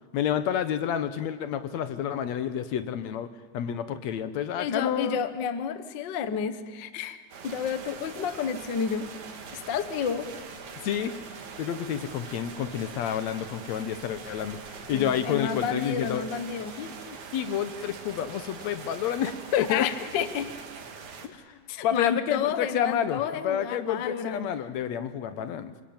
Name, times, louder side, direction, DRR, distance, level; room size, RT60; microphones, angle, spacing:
voice 1, 0.1-3.3 3.5-5.2 10.8-11.2 11.6-16.2 16.8-19.9 21.2-25.7, left 9 dB, 70° left, 12 dB, 2.1 m, -29 dB
voice 2, 4.6-9.1 9.5-10.3 14.9-16.8 19.5-20.5 21.7-24.5, left 7 dB, 50° left, 11 dB, 1.5 m, -31 dB
sound 1, 7.3-21.3, right 5 dB, 75° right, 3.4 m, -43 dB
27.0 x 24.5 x 8.8 m, 1.5 s
omnidirectional pair, 3.4 m